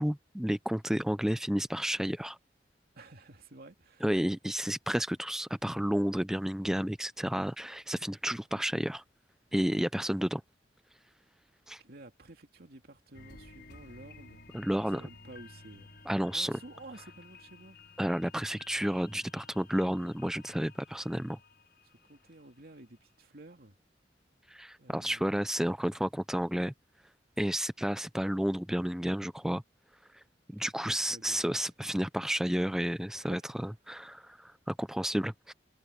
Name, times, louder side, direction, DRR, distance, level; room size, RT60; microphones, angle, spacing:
voice 1, 0.0-2.4 4.0-9.0 9.5-10.4 11.7-11.8 14.5-15.0 16.1-16.6 18.0-21.4 24.5-26.7 27.4-29.6 30.1-30.2 30.5-35.5, equal, 5° right, 0.4 m, -31 dB
voice 2, 2.9-4.2 11.8-14.4 14.9-15.9 16.3-17.8 21.8-23.8 24.8-25.4 30.6-31.6 33.1-33.5, right 2 dB, 60° right, 2.7 m, -52 dB
sound 1, 13.1-22.5 22.9-23.0, left 3 dB, 65° left, 5.4 m, -54 dB
head